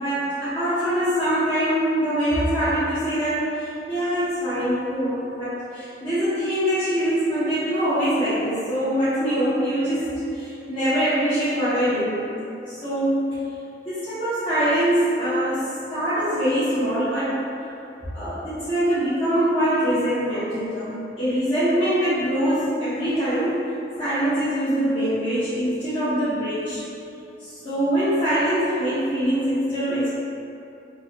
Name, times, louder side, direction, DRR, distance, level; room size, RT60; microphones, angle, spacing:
voice 1, 0.0-12.2 12.7-13.2 13.8-17.4 18.1-23.6 24.0-26.8 27.4-30.1, equal, 30° left, -16 dB, 0.9 m, -23 dB
3.9 x 2.3 x 2.8 m, 2.8 s
head